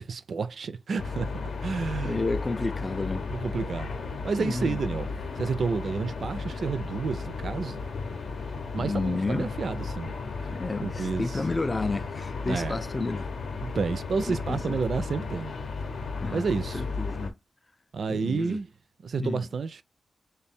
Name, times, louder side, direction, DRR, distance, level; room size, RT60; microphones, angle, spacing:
voice 1, 0.0-1.3 1.6-2.2 3.3-3.9 4.2-5.1 5.4-7.8 8.7-10.1 10.8-11.3 12.4-12.8 13.6-15.5 16.3-16.8 17.9-18.7 19.0-19.8, right 5 dB, 60° right, 0.4 m, -30 dB
sound 1, 1.0-17.3, left 4 dB, 70° left, 0.7 m, -34 dB
voice 2, 2.0-3.3 4.4-4.8 8.8-9.6 10.5-13.3 14.3-14.8 16.2-16.4 16.7-17.3 18.1-18.6 19.2-19.4, left 3 dB, 25° left, 0.3 m, -31 dB
3.3 x 2.2 x 4.2 m
wide cardioid pair, 130°, 0 cm